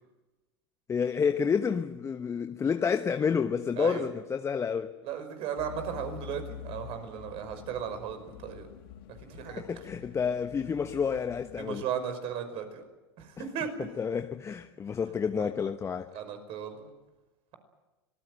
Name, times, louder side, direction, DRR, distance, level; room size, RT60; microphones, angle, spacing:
voice 1, 0.9-4.9 9.4-11.8 13.4-13.5 13.8-16.1, left 6 dB, 20° left, 1.1 m, -29 dB
voice 2, 3.8-4.1 5.0-8.7 9.3-9.6 11.6-12.8 13.2-13.7 15.4-15.5 16.1-16.9, right 8 dB, 45° right, 5.5 m, -36 dB
sound 1, 5.6-11.8, left 10 dB, 60° left, 3.0 m, -46 dB
25.5 x 20.0 x 7.9 m
figure-of-eight pair, 90°, 14 cm